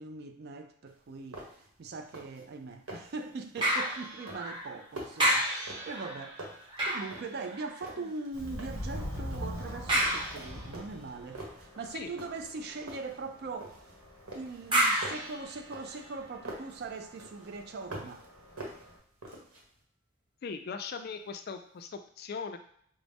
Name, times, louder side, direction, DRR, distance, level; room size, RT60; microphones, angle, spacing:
voice 1, 0.0-1.4 1.8-6.4 6.8-13.8 14.3-18.2, right 3 dB, 45° right, 0.3 m, -41 dB
sound 1, 0.9-1.0 1.3-1.7 2.0-2.4 2.7-3.2 3.6-3.9 4.3-6.1 6.4-7.5 7.8-8.9 9.3-9.6 10.0-10.4 10.7-11.7 12.2-12.6 12.9-13.9 14.3-16.8 17.2-18.3 18.6-19.6, right 1 dB, 90° right, 1.1 m, -45 dB
sound 2, 3.6-4.8 5.2-8.0 9.9-10.8 14.7-16.2 16.7-16.8, right 1 dB, 20° right, 0.8 m, -31 dB
Subway metro underground, 8.3-19.0, equal, 75° right, 1.5 m, -44 dB
voice 2, 20.4-22.6, left 5 dB, 45° left, 0.3 m, -39 dB
5.0 x 2.0 x 3.4 m
head